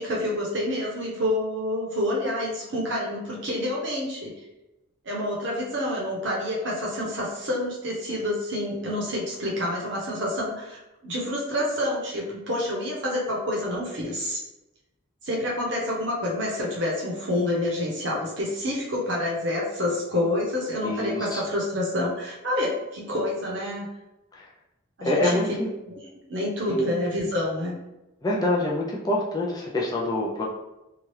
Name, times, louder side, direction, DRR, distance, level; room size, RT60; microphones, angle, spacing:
voice 1, 0.0-4.3 5.0-14.4 15.2-23.9 25.0-25.4 25.9-26.0 26.3-27.8, left 1 dB, 60° right, -3 dB, 0.8 m, -28 dB
voice 2, 20.8-21.4 24.4-24.5 25.0-25.7 26.7-26.9 28.2-30.4, left 1 dB, 20° left, -3 dB, 0.3 m, -25 dB
2.8 x 2.3 x 3.1 m, 0.95 s
head